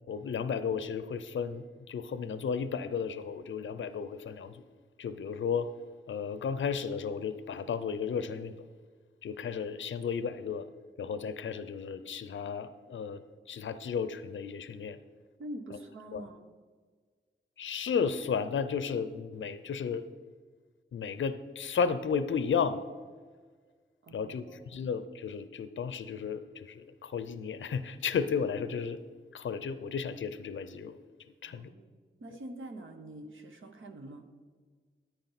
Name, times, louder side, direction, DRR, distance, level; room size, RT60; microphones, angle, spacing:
voice 1, 0.1-4.6 5.0-5.7 6.1-8.6 9.2-10.7 11.0-13.2 13.5-15.0 16.1-16.2 17.6-20.1 20.9-22.9 24.1-29.0 29.3-31.0 31.4-31.7, left 6 dB, 65° left, 12 dB, 0.5 m, -33 dB
voice 2, 15.4-16.4 24.0-24.9 31.4-31.9 32.2-34.2, right 1 dB, 70° right, 4 dB, 1.1 m, -45 dB
10.5 x 8.4 x 4.1 m, 1.5 s
cardioid pair, 40°, 21 cm